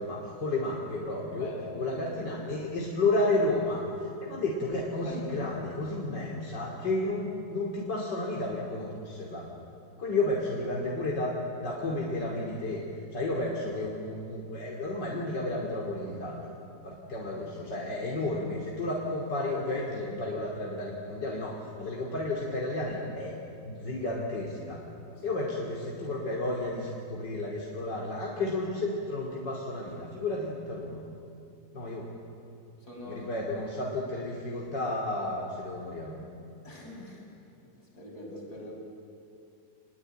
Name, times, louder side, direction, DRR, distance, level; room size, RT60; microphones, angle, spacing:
voice 1, 0.0-9.5 10.0-12.8 13.1-16.4 16.8-23.4 23.6-24.8 25.2-31.1 31.7-32.1 33.1-36.3, left 2 dB, 85° left, -2 dB, 3.4 m, -32 dB
voice 2, 1.4-2.9 5.0-5.6 17.6-17.9 25.1-25.4 32.8-33.3 36.6-37.2 37.6-38.8, left 2 dB, 65° left, -1 dB, 6.5 m, -44 dB
27.5 x 20.5 x 9.1 m, 2.5 s
omnidirectional pair, 1.8 m